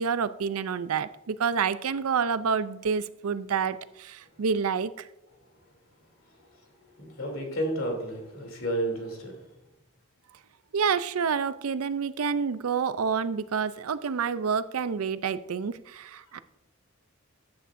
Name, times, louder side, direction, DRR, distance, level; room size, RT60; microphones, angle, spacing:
voice 1, 0.0-5.1 10.7-16.4, right 6 dB, 75° right, 14 dB, 0.5 m, -28 dB
voice 2, 7.2-9.3, right 1 dB, 65° left, 1 dB, 3.0 m, -31 dB
14.0 x 9.4 x 2.6 m, 0.91 s
head